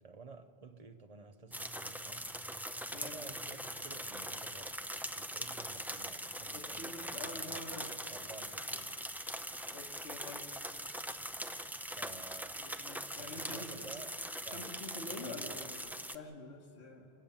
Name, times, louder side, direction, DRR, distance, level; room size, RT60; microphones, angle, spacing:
voice 1, 0.0-2.4 3.0-4.9 5.2-9.0 12.0-12.7 13.2-14.8 15.1-15.7, right 4 dB, 40° right, 0.9 m, -53 dB
sound 1, 1.5-16.2, equal, ahead, 0.4 m, -42 dB
voice 2, 2.9-3.2 6.5-7.9 9.7-10.5 12.6-13.9 14.5-15.8 16.1-17.1, left 2 dB, 85° left, 2.1 m, -47 dB
27.5 x 16.5 x 7.3 m
omnidirectional pair, 1.1 m